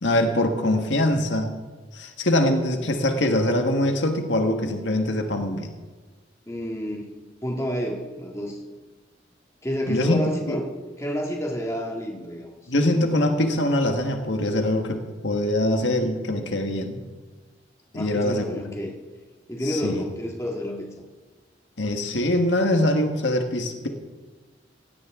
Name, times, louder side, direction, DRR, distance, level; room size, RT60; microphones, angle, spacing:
voice 1, 0.0-1.5 1.9-5.7 9.9-10.6 12.7-17.0 17.9-18.6 19.7-20.0 21.8-23.9, left 1 dB, 75° left, 5 dB, 1.6 m, -23 dB
voice 2, 6.5-7.1 7.4-8.7 9.6-10.7 11.0-12.5 17.9-19.0 19.5-20.9, equal, 15° left, 0 dB, 1.9 m, -29 dB
17.0 x 16.0 x 3.7 m, 1.3 s
head